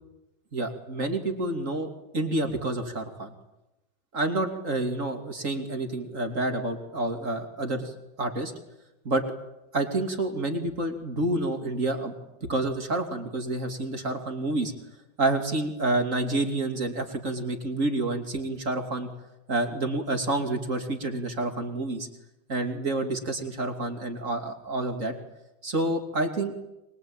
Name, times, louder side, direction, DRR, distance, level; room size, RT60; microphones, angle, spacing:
voice 1, 0.5-3.3 4.1-8.5 9.0-9.2 9.7-12.1 12.5-14.7 15.2-19.1 19.5-22.1 22.5-25.1 25.6-26.5, right 2 dB, 40° right, 5 dB, 3.1 m, -28 dB
25.0 x 22.0 x 9.0 m, 0.96 s
omnidirectional pair, 2.2 m